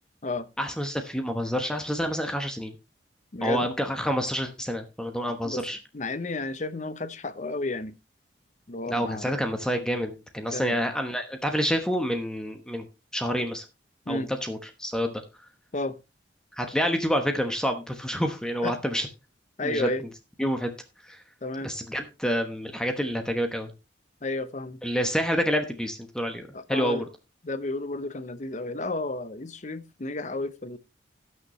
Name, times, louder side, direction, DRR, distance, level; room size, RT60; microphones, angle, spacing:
voice 1, 0.6-2.7 3.4-5.8 8.9-12.8 13.1-13.6 14.1-15.2 16.6-19.1 19.6-19.9 20.4-20.7 21.0-21.2 21.6-23.7 24.8-27.0, equal, 5° left, 1.1 m, -28 dB
voice 2, 3.3-3.7 5.4-5.6 5.9-8.0 8.7-9.3 10.5-10.8 14.1-14.3 15.7-16.0 18.6-18.8 19.6-20.1 21.4-21.7 24.2-24.8 26.5-27.1 27.4-30.8, left 2 dB, 40° left, 0.8 m, -32 dB
18.0 x 6.5 x 3.1 m
head